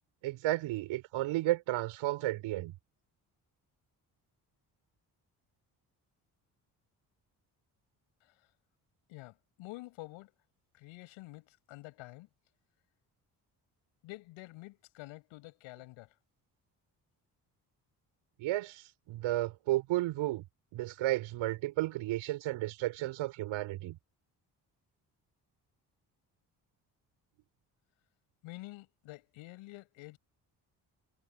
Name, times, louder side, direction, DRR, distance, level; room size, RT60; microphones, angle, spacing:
voice 1, 0.2-2.7 18.4-20.4 20.7-24.0, right 16 dB, 80° right, 5.6 m, -33 dB
voice 2, 9.1-10.3 10.7-12.3 14.0-16.1 28.4-30.2, left 21 dB, 85° left, 7.2 m, -49 dB
hypercardioid pair, 45°, 47 cm